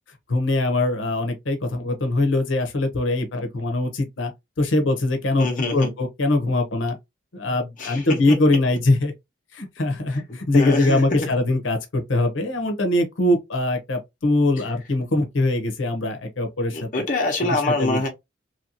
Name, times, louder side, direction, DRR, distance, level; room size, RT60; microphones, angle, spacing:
voice 1, 0.3-4.3 4.6-7.0 7.3-9.1 9.5-16.8 17.4-18.0, left 2 dB, 85° left, 0.8 m, -22 dB
voice 2, 5.4-5.9 7.8-8.4 10.1-11.4 14.5-14.6 16.7-18.1, left 2 dB, 40° left, 1.0 m, -25 dB
3.1 x 2.7 x 2.9 m
head